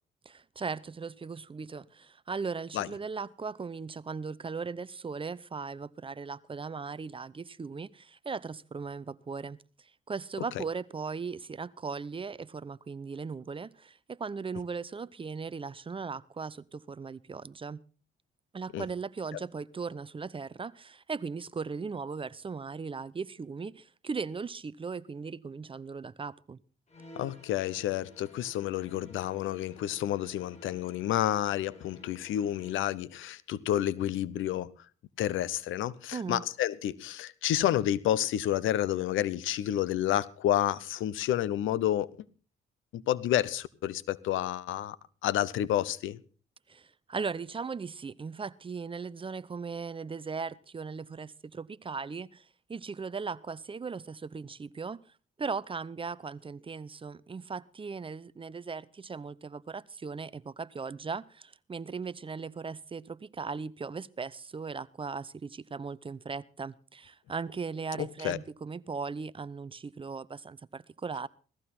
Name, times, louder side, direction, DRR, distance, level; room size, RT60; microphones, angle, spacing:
voice 1, 0.3-9.6 10.1-17.8 18.5-26.6 36.1-36.4 46.7-55.0 55.4-71.3, right 5 dB, 25° right, 0.7 m, -38 dB
sound 1, 26.9-33.0, equal, 35° left, 6.9 m, -53 dB
voice 2, 27.2-34.7 35.2-42.1 42.9-45.0 45.2-46.2 68.0-68.4, left 12 dB, 85° left, 0.8 m, -30 dB
17.5 x 14.0 x 4.3 m
cardioid pair, 90°, 20 cm